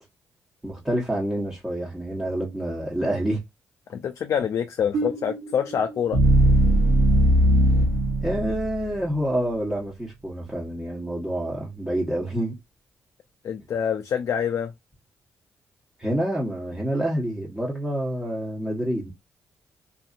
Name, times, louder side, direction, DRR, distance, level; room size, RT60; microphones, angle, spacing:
voice 1, 0.6-3.4 8.2-12.5 16.0-19.1, right 1 dB, 10° right, 1.1 m, -27 dB
voice 2, 3.9-6.2 13.4-14.7, left 8 dB, 65° left, 0.4 m, -26 dB
sound 1, 4.9-9.0, right 1 dB, 85° right, 0.9 m, -20 dB
2.6 x 2.6 x 2.4 m
cardioid pair, 70°, 6 cm